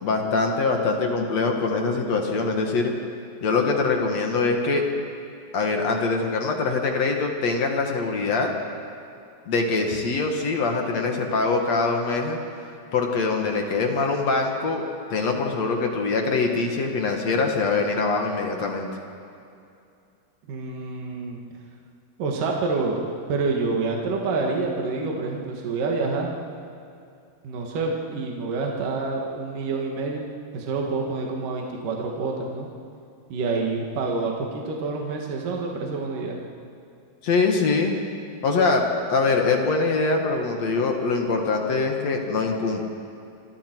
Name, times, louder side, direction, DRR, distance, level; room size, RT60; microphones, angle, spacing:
voice 1, 0.0-2.9 3.4-4.8 5.5-8.5 9.5-12.4 12.9-14.8 15.1-18.9 37.2-38.0 38.4-42.9, left 3 dB, 50° left, 2 dB, 2.3 m, -23 dB
voice 2, 20.5-21.4 22.2-26.3 27.4-30.3 30.5-32.7 33.3-36.4, right 3 dB, 60° right, 0 dB, 3.0 m, -27 dB
27.5 x 25.5 x 4.6 m, 2.5 s
omnidirectional pair, 4.9 m